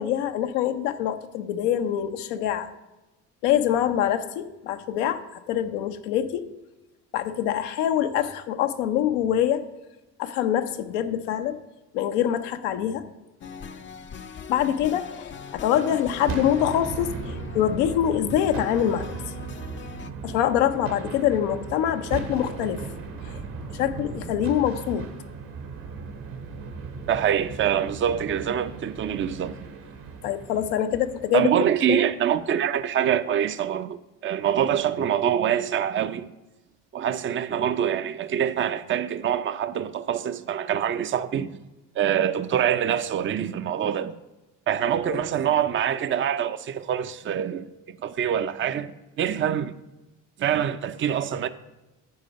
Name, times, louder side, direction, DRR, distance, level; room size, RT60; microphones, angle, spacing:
voice 1, 0.0-2.7 3.4-5.2 5.5-6.5 7.1-9.6 10.2-11.6 11.9-13.0 14.5-19.1 20.2-22.8 23.2-23.4 23.7-25.1 30.2-31.5 31.9-32.0 45.1-45.2, left 10 dB, 85° left, 0.7 m, -25 dB
sound 1, 13.4-20.1, left 6 dB, 35° left, 0.6 m, -41 dB
sound 2, 15.7-32.1, right 5 dB, 70° right, 1.7 m, -37 dB
voice 2, 27.1-29.5 31.3-34.0 34.2-36.3 36.9-41.5 42.0-44.1 44.7-48.9 49.2-49.7 50.4-51.5, right 9 dB, 35° right, 0.5 m, -25 dB
9.6 x 4.9 x 5.2 m
supercardioid pair, 70°, 35 cm